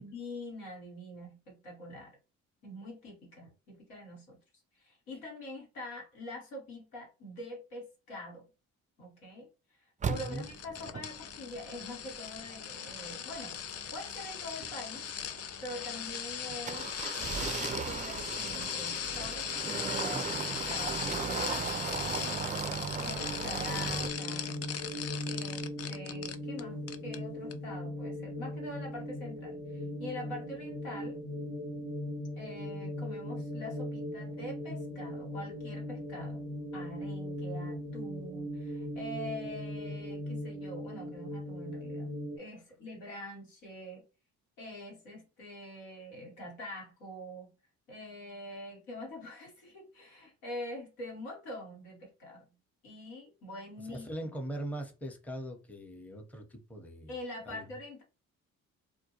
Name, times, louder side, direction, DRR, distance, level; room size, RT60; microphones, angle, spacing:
voice 1, 0.0-2.2 2.6-4.4 4.8-8.4 9.0-9.5 10.1-13.6 13.9-15.0 15.6-22.3 22.9-24.6 25.3-31.2 32.4-36.4 36.7-44.0 44.6-47.5 47.9-52.5 52.8-54.1 57.1-58.0, left 1 dB, 85° left, 1.2 m, -44 dB
sound 1, 10.0-24.1, right 6 dB, 20° right, 0.3 m, -38 dB
sound 2, 10.1-26.6 26.9-27.2 27.5-27.6, left 8 dB, 40° left, 0.4 m, -38 dB
voice 2, 10.1-10.5 20.1-20.3 53.9-57.1 57.5-57.6, right 1 dB, 5° left, 0.7 m, -41 dB
sound 3, 23.2-42.4, left 1 dB, 70° left, 1.1 m, -39 dB
2.1 x 2.1 x 2.9 m
hypercardioid pair, 45°, 40 cm